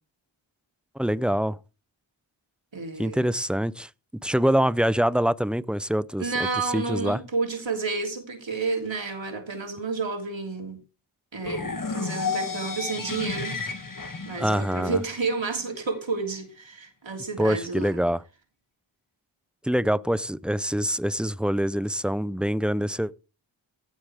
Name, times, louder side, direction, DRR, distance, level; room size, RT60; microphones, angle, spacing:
voice 1, 1.0-1.6 3.0-3.9 4.2-6.3 6.6-7.2 14.4-15.0 17.4-18.2 19.6-23.1, equal, ahead, 0.5 m, -25 dB
voice 2, 2.7-3.2 6.2-10.8 11.3-13.5 14.2-18.0, right 4 dB, 65° right, 3.1 m, -30 dB
sound 1, 11.4-15.4, left 4 dB, 40° left, 1.9 m, -32 dB
16.5 x 7.2 x 3.4 m
cardioid pair, 45°, 48 cm